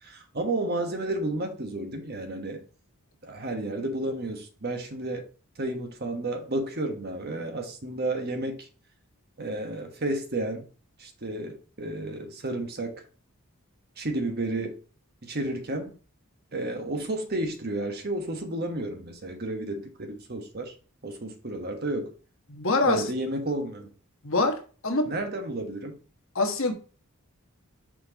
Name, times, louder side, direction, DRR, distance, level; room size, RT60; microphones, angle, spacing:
voice 1, 0.0-2.6 3.2-5.2 5.6-8.7 9.4-10.7 11.0-13.0 14.0-14.7 15.2-15.9 16.5-20.7 21.0-22.1 22.8-23.9 25.1-26.0, right 2 dB, 45° right, 1.2 m, -32 dB
voice 2, 22.5-23.0 24.2-24.6 24.8-25.1 26.3-26.7, left 3 dB, 60° left, 1.2 m, -24 dB
6.2 x 4.4 x 4.1 m
head